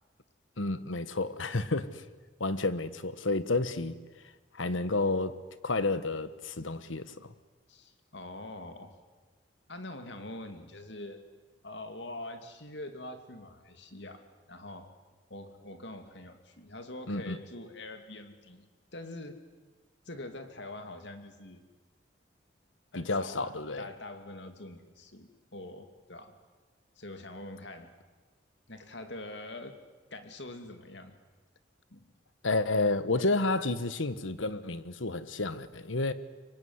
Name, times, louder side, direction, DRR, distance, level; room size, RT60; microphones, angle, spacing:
voice 1, 0.6-2.0 2.4-4.0 4.5-5.4 5.6-7.3 17.1-17.4 22.9-23.8 32.4-36.1, left 2 dB, 85° left, 1.4 m, -30 dB
voice 2, 7.7-9.0 9.7-11.2 11.6-14.2 14.5-15.0 15.3-19.4 20.0-21.6 22.9-26.4 27.0-27.9 28.7-29.8 30.1-31.2 31.9-32.0, left 2 dB, 65° left, 2.8 m, -44 dB
26.5 x 23.5 x 9.7 m
head